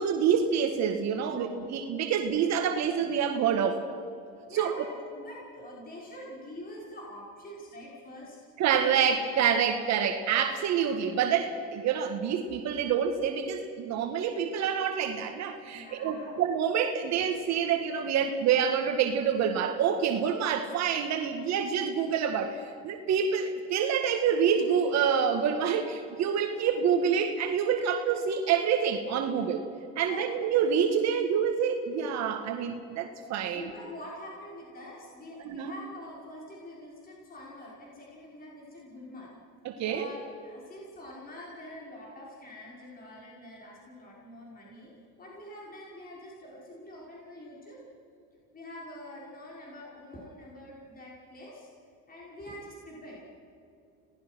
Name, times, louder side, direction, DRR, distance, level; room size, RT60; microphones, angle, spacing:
voice 1, 0.0-3.8 4.5-4.7 8.6-29.7 30.0-33.6 35.4-35.7 39.7-40.1, right 7 dB, 55° right, 6 dB, 1.8 m, -27 dB
voice 2, 4.5-4.9 5.1-8.4 15.7-16.4 30.0-30.3 33.5-39.3 39.8-44.9 45.2-47.8 48.5-51.7 52.1-53.2, left 1 dB, 25° left, -4 dB, 5.9 m, -45 dB
26.5 x 18.5 x 6.2 m, 2.5 s
supercardioid pair, 110°, 33 cm